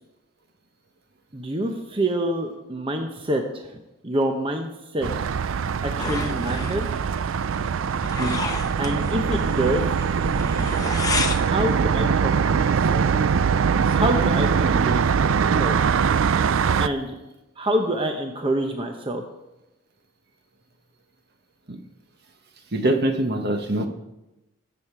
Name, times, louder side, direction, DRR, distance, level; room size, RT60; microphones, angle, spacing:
voice 1, 1.3-3.7 4.0-5.1 6.0-6.9 8.8-9.9 11.4-13.1 13.9-15.8 16.8-17.2 17.6-19.2, right 1 dB, 25° right, 4 dB, 0.9 m, -26 dB
sound 1, 5.0-16.9, right 6 dB, 70° right, 0.4 m, -22 dB
sound 2, 6.0-11.5, left 3 dB, 15° left, 0.9 m, -32 dB
voice 2, 22.7-23.9, right 1 dB, 50° right, 5 dB, 1.3 m, -23 dB
19.5 x 7.5 x 4.8 m, 0.96 s
head